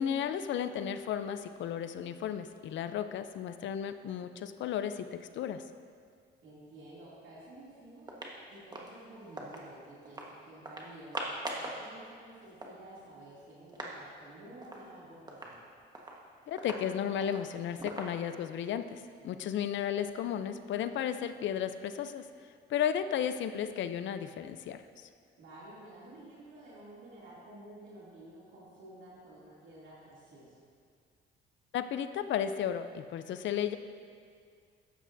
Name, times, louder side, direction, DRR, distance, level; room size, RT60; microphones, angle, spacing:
voice 1, 0.0-5.6 16.5-22.2 22.7-24.9 31.7-33.8, left 9 dB, 70° left, 11 dB, 0.5 m, -34 dB
voice 2, 6.4-8.1 8.5-15.6 19.2-19.4 25.4-30.6, right 1 dB, 75° right, -7 dB, 2.6 m, -51 dB
sound 1, 7.6-7.7 8.0-9.7 10.1-10.3 10.7-11.8 12.1-12.2 12.4-14.0 14.3-14.4 14.6-14.9 15.3-18.6, right 1 dB, 20° right, 1.3 m, -42 dB
12.5 x 8.8 x 2.6 m, 2.1 s
cardioid pair, 90°, 20 cm